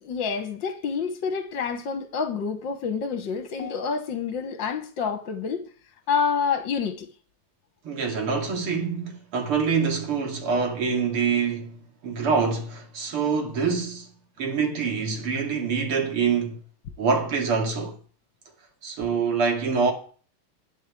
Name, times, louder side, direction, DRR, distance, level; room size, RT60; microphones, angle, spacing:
voice 1, 0.0-5.6 6.1-7.1, left 6 dB, 60° left, 1.8 m, -28 dB
voice 2, 7.8-14.1 14.4-16.6 17.0-18.0 18.8-19.9, right 5 dB, 80° right, 3.4 m, -25 dB
12.0 x 8.5 x 7.4 m
omnidirectional pair, 2.4 m